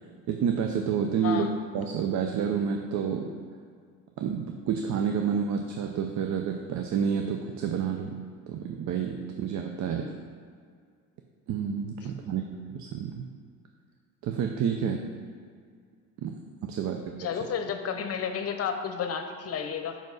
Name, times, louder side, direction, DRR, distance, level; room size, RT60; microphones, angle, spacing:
voice 1, 0.3-1.5 1.7-3.4 4.2-8.2 8.5-10.0 11.5-12.4 12.7-13.3 14.2-15.0 16.2-17.0, right 7 dB, 60° right, 4 dB, 0.6 m, -29 dB
voice 2, 9.8-10.2 12.2-12.4 14.8-14.9 17.2-20.0, left 7 dB, 45° left, 6 dB, 0.8 m, -32 dB
5.3 x 5.2 x 6.1 m, 2.1 s
cardioid pair, 95°, 33 cm